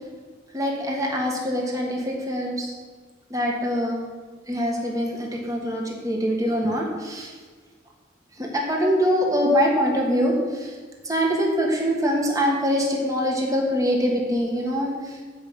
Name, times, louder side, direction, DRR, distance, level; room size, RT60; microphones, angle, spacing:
voice 1, 0.5-2.7 3.3-4.0 4.5-7.3 8.4-10.7 11.0-15.4, equal, 20° right, -1 dB, 1.6 m, -24 dB
8.0 x 5.3 x 7.6 m, 1.5 s
head